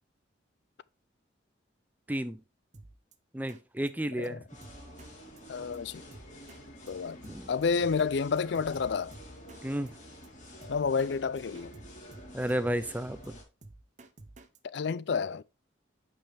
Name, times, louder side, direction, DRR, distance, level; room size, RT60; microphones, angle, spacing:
voice 1, 2.1-2.4 3.3-4.4 7.2-7.5 9.6-9.9 12.3-13.3, right 1 dB, 10° right, 0.5 m, -32 dB
Drum kit, 2.7-3.1 3.5-3.6 3.9-4.0 4.2-4.3 4.6-5.1 5.4-5.5 5.7-5.8 6.1-6.6 6.9-7.0 7.2-8.1 8.4-9.6 9.9-10.0 10.2-10.3 10.6-11.1 11.4-12.6 12.9-14.6, right 2 dB, 40° right, 0.8 m, -51 dB
sound 1, 4.5-13.4, equal, 40° left, 2.6 m, -49 dB
voice 2, 5.5-6.1 6.9-9.1 10.7-11.7 14.7-15.4, left 5 dB, 65° left, 0.4 m, -30 dB
8.8 x 5.5 x 3.4 m
head